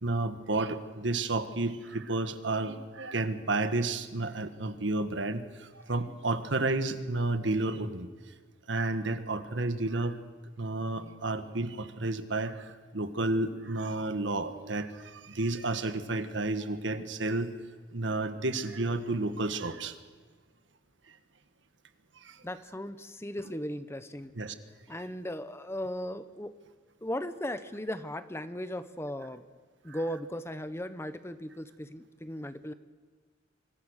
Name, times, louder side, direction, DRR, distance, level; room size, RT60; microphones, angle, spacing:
voice 1, 0.0-8.1 8.7-10.2 10.6-12.6 12.9-17.5 17.9-20.0 22.2-22.3 24.4-24.5, right 2 dB, 75° right, 9 dB, 1.6 m, -31 dB
voice 2, 22.4-24.4 24.9-26.6 27.0-29.4 29.8-32.7, left 1 dB, 15° left, 11 dB, 0.9 m, -37 dB
26.5 x 25.5 x 6.5 m, 1.5 s
head